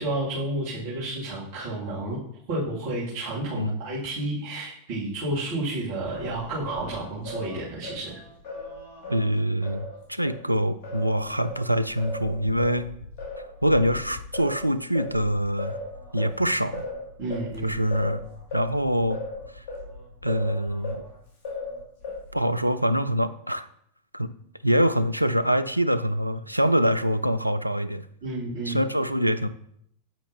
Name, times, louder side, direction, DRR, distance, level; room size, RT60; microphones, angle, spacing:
voice 1, 0.0-2.2 2.5-8.2 17.2-17.7 28.2-28.9, right 2 dB, 45° right, -10 dB, 2.2 m, -31 dB
Singing, 6.1-10.4 10.8-21.1 21.4-22.5, left 2 dB, 45° left, 2.0 m, -37 dB
voice 2, 9.1-12.9 13.6-15.8 16.1-16.9 17.6-18.2 18.5-19.2 19.5-19.6 20.2-21.1 22.3-23.7 24.1-24.3 24.6-28.0 28.7-29.5, equal, 90° right, 11 dB, 0.3 m, -24 dB
8.9 x 5.0 x 2.7 m, 0.69 s
figure-of-eight pair, 90°, 0 cm